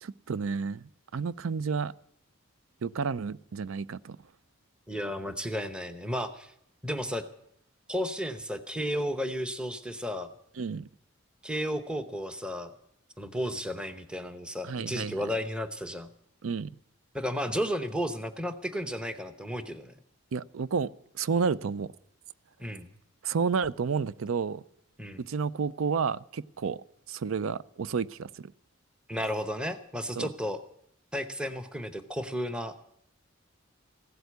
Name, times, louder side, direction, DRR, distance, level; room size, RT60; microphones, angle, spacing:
voice 1, 0.0-1.9 2.8-4.2 10.6-10.8 14.6-15.1 16.4-16.7 20.3-20.9 21.1-21.9 23.2-24.6 25.2-26.8 27.1-28.3 30.2-30.3, right 5 dB, 80° right, 0.5 m, -30 dB
voice 2, 4.9-6.5 6.8-7.2 7.9-10.3 11.4-12.7 13.2-16.1 17.1-19.9 22.6-22.9 25.0-25.2 29.1-30.6 31.1-32.7, equal, 5° right, 0.8 m, -33 dB
15.5 x 8.1 x 9.4 m
head